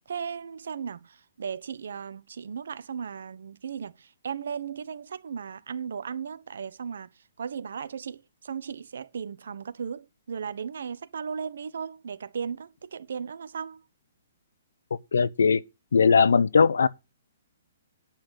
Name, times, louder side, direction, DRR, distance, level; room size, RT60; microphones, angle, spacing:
voice 1, 0.1-13.8, right 6 dB, 70° right, 1.2 m, -36 dB
voice 2, 15.1-15.6 15.9-16.9, left 5 dB, 90° left, 0.8 m, -19 dB
10.5 x 5.7 x 6.6 m
hypercardioid pair, 165°, 0 cm